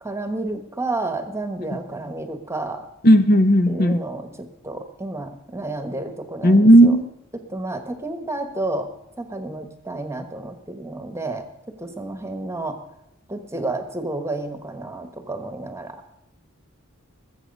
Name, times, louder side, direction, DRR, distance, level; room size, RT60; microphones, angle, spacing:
voice 1, 0.0-2.9 3.7-6.9 7.5-8.9 9.2-11.5 11.8-12.8 13.3-16.0, right 2 dB, 15° right, 1.3 m, -30 dB
voice 2, 3.0-4.0 6.4-7.0, equal, 45° left, 0.8 m, -14 dB
20.5 x 7.3 x 5.4 m
head